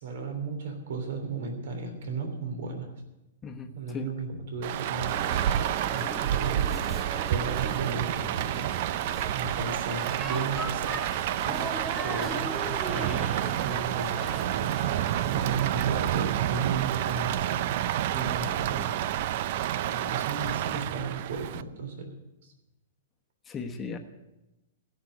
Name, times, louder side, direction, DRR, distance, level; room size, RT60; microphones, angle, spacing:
voice 1, 0.0-2.9 3.7-5.2 5.9-6.7 7.3-8.7 9.3-11.0 12.0-14.9 15.2-17.8 18.2-18.9 19.9-22.1 22.4-22.5, right 4 dB, 65° right, 4 dB, 3.2 m, -35 dB
voice 2, 3.4-4.1 11.5-11.8 18.1-18.9 23.4-24.0, left 4 dB, 15° left, 5 dB, 1.2 m, -39 dB
Rain, 4.6-21.6, right 12 dB, 45° right, 0.5 m, -29 dB
sound 1, 5.1-16.2, equal, 5° right, 0.7 m, -40 dB
16.0 x 6.1 x 9.4 m, 0.97 s
hypercardioid pair, 155°, 0 cm